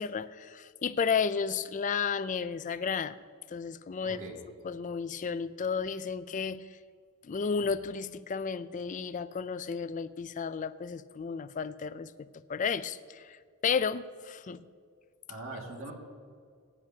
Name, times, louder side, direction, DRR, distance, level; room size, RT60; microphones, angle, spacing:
voice 1, 0.0-3.2 3.5-4.2 4.6-6.7 7.2-13.4 13.6-14.6, left 6 dB, 35° left, 14 dB, 0.3 m, -33 dB
voice 2, 4.0-4.4 15.3-15.9, right 2 dB, 65° right, 0 dB, 2.1 m, -41 dB
19.0 x 9.8 x 2.8 m, 2.1 s
head